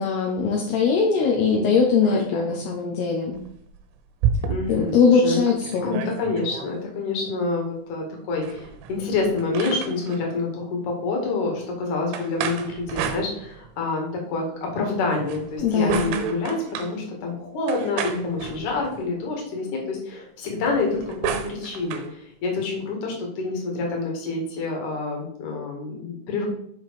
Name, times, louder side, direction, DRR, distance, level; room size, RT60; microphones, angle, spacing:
voice 1, 0.0-3.4 4.7-6.0 15.6-16.2, left 5 dB, 80° left, 0 dB, 2.4 m, -21 dB
voice 2, 2.0-2.4 4.5-5.4 5.8-26.4, left 3 dB, 50° left, 0 dB, 2.6 m, -27 dB
sound 1, 3.3-4.9 5.3-5.4 5.6-6.7 8.3-10.2 12.1-13.8 15.1-17.0 17.7-19.1 20.6-22.1, right 8 dB, 80° right, 3.1 m, -31 dB
8.0 x 5.6 x 4.8 m, 0.69 s
omnidirectional pair, 5.9 m